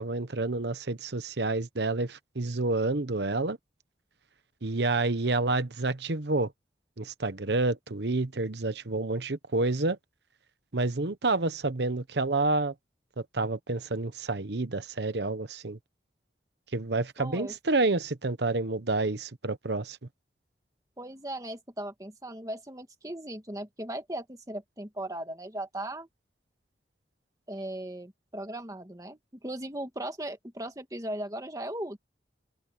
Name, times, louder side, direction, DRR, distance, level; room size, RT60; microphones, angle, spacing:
voice 1, 0.0-3.6 4.6-6.5 7.0-10.0 10.7-12.7 13.3-15.8 16.7-20.0, right 2 dB, 70° right, 1.0 m, -29 dB
voice 2, 17.2-17.5 21.0-26.1 27.5-32.0, right 1 dB, 20° right, 2.0 m, -38 dB
head